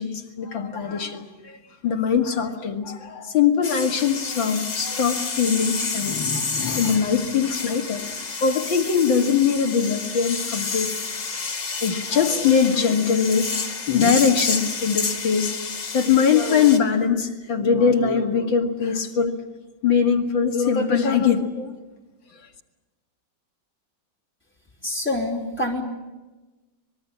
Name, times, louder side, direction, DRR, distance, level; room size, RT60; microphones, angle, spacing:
voice 1, 0.0-1.6 1.8-8.1 8.4-10.9 11.8-13.5 13.9-15.6 15.9-19.3 19.8-21.7, left 6 dB, 85° left, 2 dB, 2.8 m, -21 dB
sound 1, 3.6-16.8, left 4 dB, 65° left, 3.0 m, -30 dB
voice 2, 24.8-25.8, left 1 dB, 5° left, -1 dB, 3.8 m, -26 dB
25.0 x 21.5 x 8.6 m, 1.1 s
omnidirectional pair, 2.0 m